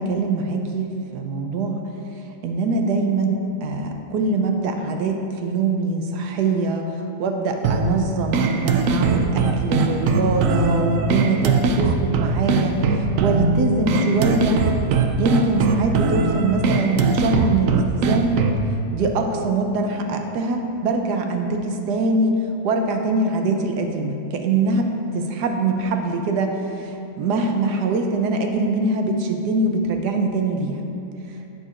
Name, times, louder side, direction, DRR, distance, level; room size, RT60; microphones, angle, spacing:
voice 1, 0.0-1.8 2.4-6.9 7.2-14.6 15.2-18.4 18.9-30.9, right 3 dB, 85° right, 4 dB, 1.3 m, -23 dB
sound 1, 7.6-18.7, right 4 dB, 70° right, 0.8 m, -21 dB
10.5 x 8.0 x 2.5 m, 2.7 s
omnidirectional pair, 1.7 m